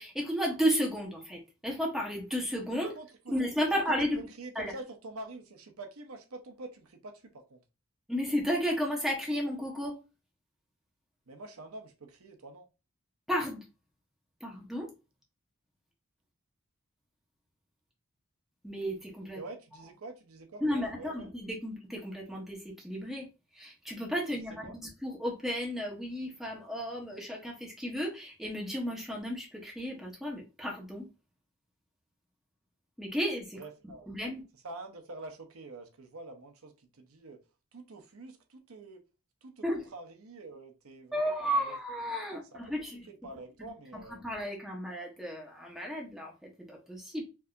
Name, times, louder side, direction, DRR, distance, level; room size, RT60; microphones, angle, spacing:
voice 1, 0.0-2.9 3.3-4.2 4.6-4.7 8.1-9.9 13.3-13.6 14.4-14.9 18.6-19.4 20.6-23.3 23.6-24.6 25.0-31.1 33.0-33.6 34.1-34.4 39.6-39.8 41.1-43.1 43.9-47.2, equal, ahead, 1.0 m, -33 dB
voice 2, 2.8-3.3 3.7-7.6 11.3-12.7 19.3-21.3 24.4-24.8 33.5-34.1 34.6-37.4 37.7-39.0 39.4-41.8 42.5-42.6 43.1-44.2, right 2 dB, 85° right, 0.8 m, -46 dB
4.7 x 2.8 x 2.5 m
head